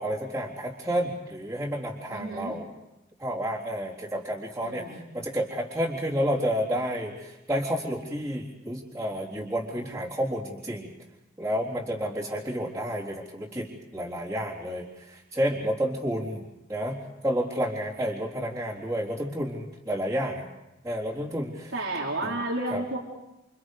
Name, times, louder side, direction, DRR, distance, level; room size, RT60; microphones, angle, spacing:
voice 1, 0.0-2.7 3.2-10.9 11.4-20.5 20.8-21.7 22.2-22.4 22.7-22.8, equal, 10° right, -9 dB, 3.8 m, -30 dB
voice 2, 2.1-2.5 4.6-5.1 21.7-23.0, right 2 dB, 85° right, -1 dB, 3.9 m, -31 dB
29.5 x 28.5 x 5.1 m, 0.95 s
head